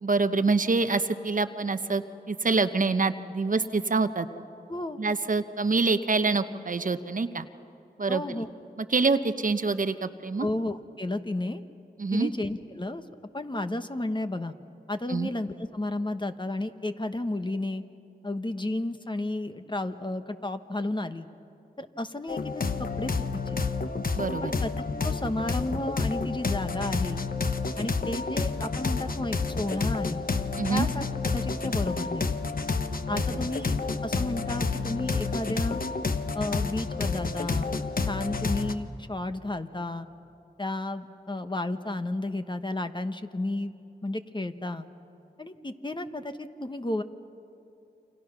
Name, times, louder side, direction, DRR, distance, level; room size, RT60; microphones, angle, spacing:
voice 1, 0.0-4.4 5.0-7.5 8.0-8.2 8.8-10.5 12.0-12.3 15.1-15.3 24.1-24.5 30.6-30.9 33.1-33.2, right 3 dB, 55° right, 10 dB, 1.0 m, -26 dB
voice 2, 4.7-5.0 8.1-8.5 10.4-11.6 12.1-13.0 13.3-14.5 14.9-17.8 18.2-21.3 21.8-22.4 22.8-23.6 24.4-24.7 25.0-27.2 27.8-30.2 30.7-31.0 31.3-32.4 33.1-35.8 36.3-37.7 38.0-40.1 40.6-43.7 44.0-44.9 45.4-47.0, left 2 dB, 30° left, 8 dB, 1.2 m, -32 dB
sound 1, 22.3-38.7, left 4 dB, 60° left, 1.2 m, -29 dB
29.0 x 25.5 x 6.0 m, 2.8 s
cardioid pair, 45°, 17 cm